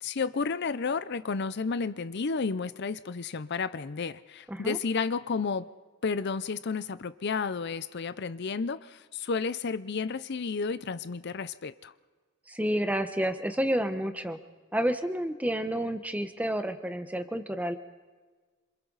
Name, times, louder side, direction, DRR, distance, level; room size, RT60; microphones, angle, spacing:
voice 1, 0.0-5.7 6.0-11.9, left 4 dB, 55° left, 14 dB, 0.5 m, -32 dB
voice 2, 12.5-14.4 14.7-17.8, equal, 5° right, 8 dB, 1.0 m, -30 dB
27.5 x 26.5 x 4.0 m, 1.4 s
head